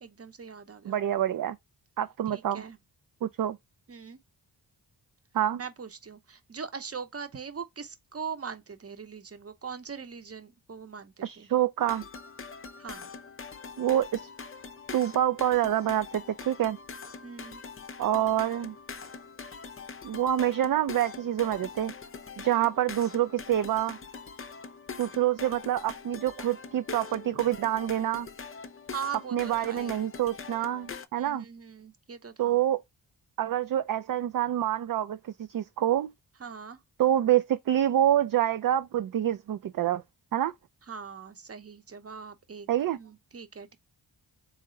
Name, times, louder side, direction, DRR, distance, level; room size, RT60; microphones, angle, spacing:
voice 1, 0.0-1.0 2.3-2.8 3.9-4.2 5.6-11.5 12.8-13.1 17.2-17.6 28.9-30.0 31.1-32.6 36.4-36.8 40.9-42.7 43.0-43.8, right 6 dB, 35° right, 0.8 m, -41 dB
voice 2, 0.9-1.6 2.0-2.6 3.2-3.6 5.3-5.6 11.2-12.0 13.8-14.2 14.9-16.8 18.0-18.7 20.0-21.9 22.4-24.0 25.0-28.3 29.3-31.4 32.4-32.8 33.4-36.1 37.0-40.0 40.3-40.5 42.7-43.0, right 11 dB, 55° right, 0.4 m, -27 dB
sound 1, 11.8-31.1, left 5 dB, 30° left, 0.5 m, -43 dB
3.6 x 3.1 x 3.8 m
cardioid pair, 70°, 42 cm